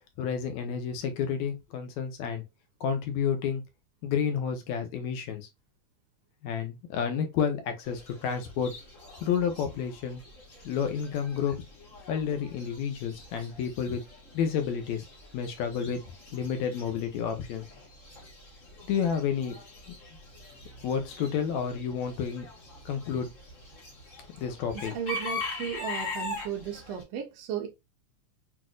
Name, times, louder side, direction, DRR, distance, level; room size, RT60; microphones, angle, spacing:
voice 1, 0.2-2.4 2.8-3.6 4.0-5.5 6.4-8.7 9.2-10.2 10.6-11.5 12.1-14.0 14.3-15.1 15.3-16.0 16.3-17.6 18.9-19.6 19.9-20.0 20.8-22.5 22.8-23.3 24.3-24.9, left 7 dB, 75° left, 1.9 m, -30 dB
Chicken rooster / Bird, 7.8-27.0, left 2 dB, 50° left, 0.9 m, -43 dB
voice 2, 24.7-27.7, right 8 dB, 75° right, 1.5 m, -35 dB
6.0 x 2.5 x 2.3 m
omnidirectional pair, 3.7 m